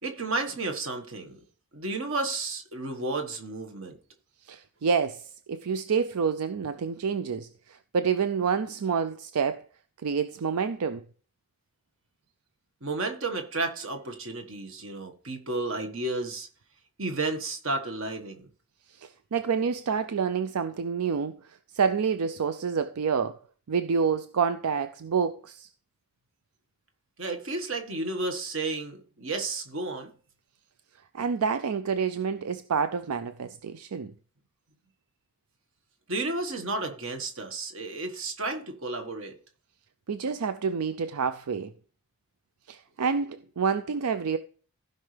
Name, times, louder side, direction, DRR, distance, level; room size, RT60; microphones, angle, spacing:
voice 1, 0.0-1.4 1.7-4.0 12.8-16.5 17.0-18.5 27.2-30.1 36.1-39.4, right 2 dB, 60° right, 1.6 m, -32 dB
voice 2, 4.4-9.7 10.0-11.1 18.9-23.4 23.7-25.7 31.1-34.1 40.1-41.7 42.7-44.4, right 6 dB, 85° right, 0.5 m, -28 dB
15.5 x 5.5 x 3.4 m
head